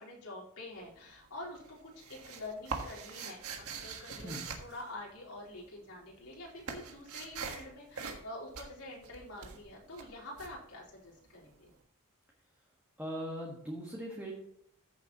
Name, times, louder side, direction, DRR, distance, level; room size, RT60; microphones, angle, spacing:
voice 1, 0.0-3.4 3.7-4.3 4.6-11.7, left 1 dB, 90° left, -5 dB, 4.3 m, -47 dB
sound 1, 0.7-1.3 1.6-5.6 5.9-11.5, right 5 dB, 75° right, 1.5 m, -43 dB
voice 2, 13.0-14.3, equal, 10° right, -3 dB, 1.5 m, -40 dB
14.0 x 7.2 x 3.0 m, 0.72 s
head